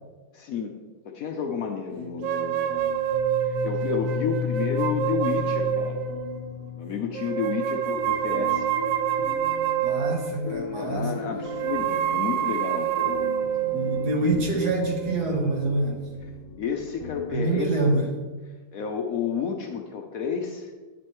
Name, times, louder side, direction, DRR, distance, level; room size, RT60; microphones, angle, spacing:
voice 1, 0.3-0.8 1.0-3.0 3.4-6.0 6.8-8.7 10.5-13.5 14.2-14.3 16.6-17.8 18.7-20.7, left 6 dB, 75° left, 3 dB, 0.8 m, -31 dB
Light Piano Noodling in B, 1.9-17.8, left 6 dB, 55° left, 1.1 m, -36 dB
sound 1, 2.2-6.4 7.1-10.6 11.4-15.8, right 10 dB, 75° right, 1.3 m, -27 dB
voice 2, 9.8-11.1 13.7-16.1 17.3-18.1, right 2 dB, 55° right, 1 dB, 1.8 m, -25 dB
9.3 x 7.6 x 3.0 m, 1.3 s
omnidirectional pair, 2.2 m